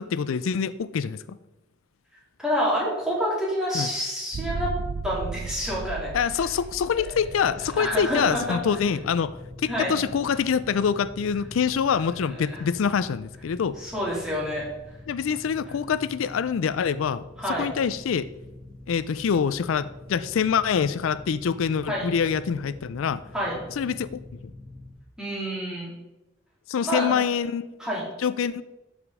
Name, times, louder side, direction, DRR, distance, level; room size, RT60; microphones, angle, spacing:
voice 1, 0.0-1.4 3.7-3.9 6.1-13.8 15.1-18.3 18.9-23.2 23.8-24.5 26.7-27.7 28.2-28.6, left 7 dB, 85° left, 15 dB, 0.4 m, -25 dB
voice 2, 2.4-4.7 5.0-6.1 7.8-8.8 9.7-10.0 12.4-12.6 13.8-14.6 17.4-17.7 21.9-22.1 23.3-23.6 25.2-25.9 26.8-27.2 27.8-28.0, equal, 5° right, -6 dB, 3.1 m, -28 dB
sound 1, 4.3-9.5, right 5 dB, 55° right, 0.4 m, -35 dB
sound 2, 7.1-24.9, left 2 dB, 35° left, 1.7 m, -45 dB
12.5 x 5.0 x 4.8 m, 0.99 s
head